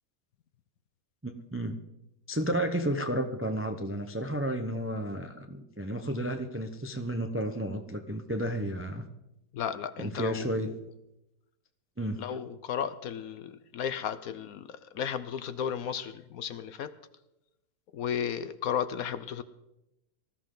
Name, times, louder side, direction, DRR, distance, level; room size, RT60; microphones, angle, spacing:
voice 1, 1.2-1.8 2.3-9.0 10.0-10.7 12.0-12.2, right 1 dB, 20° right, 6 dB, 0.3 m, -32 dB
voice 2, 9.5-10.5 12.2-16.9 17.9-19.4, left 8 dB, 65° left, 13 dB, 1.0 m, -34 dB
19.5 x 13.5 x 3.9 m, 0.91 s
omnidirectional pair, 1.9 m